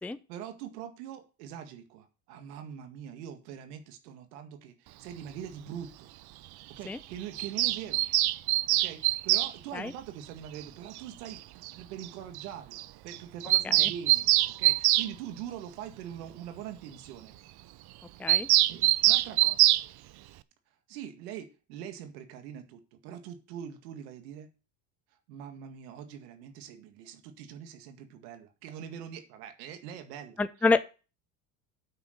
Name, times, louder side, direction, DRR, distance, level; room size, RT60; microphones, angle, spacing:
voice 1, 0.3-6.1 6.7-8.0 8.8-11.4 11.7-14.3 14.6-17.3 18.7-19.7 20.9-24.5 25.3-30.4, right 9 dB, 85° right, 6 dB, 2.0 m, -43 dB
Bird vocalization bird call bird song, 7.4-9.5 11.0-11.1 11.3-11.4 11.6-11.7 12.0-12.1 12.3-12.4 12.7-12.8 13.1-15.1 18.3-19.8, right 16 dB, 55° right, 0.7 m, -24 dB
voice 2, 30.4-30.9, left 3 dB, 5° left, 13 dB, 0.5 m, -28 dB
8.9 x 6.0 x 6.7 m, 0.33 s
supercardioid pair, 85°, 46 cm